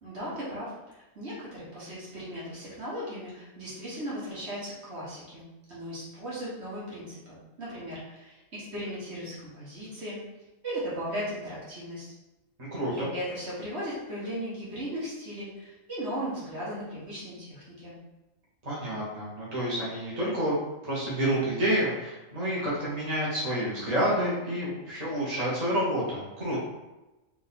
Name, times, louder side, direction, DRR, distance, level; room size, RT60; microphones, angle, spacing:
voice 1, 0.0-10.2 10.6-12.1 12.9-17.9, equal, 55° right, -8 dB, 1.7 m, -37 dB
voice 2, 12.6-13.1 18.6-20.5 20.8-26.6, right 1 dB, 30° right, -7 dB, 1.3 m, -29 dB
3.8 x 2.9 x 4.2 m, 1.0 s
omnidirectional pair, 1.4 m